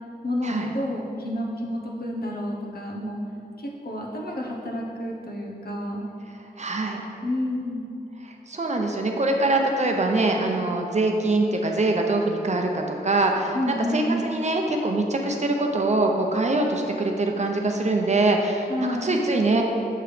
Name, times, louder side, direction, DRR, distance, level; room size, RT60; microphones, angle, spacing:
voice 1, 0.2-3.2 3.6-6.0 7.2-7.8 13.5-14.2 18.7-19.2, left 1 dB, 65° left, -1 dB, 0.9 m, -29 dB
voice 2, 6.6-7.0 8.5-13.6 13.9-18.7 19.0-19.6, right 2 dB, 45° right, 2 dB, 0.6 m, -23 dB
6.6 x 4.9 x 3.3 m, 2.6 s
wide cardioid pair, 80°, 17 cm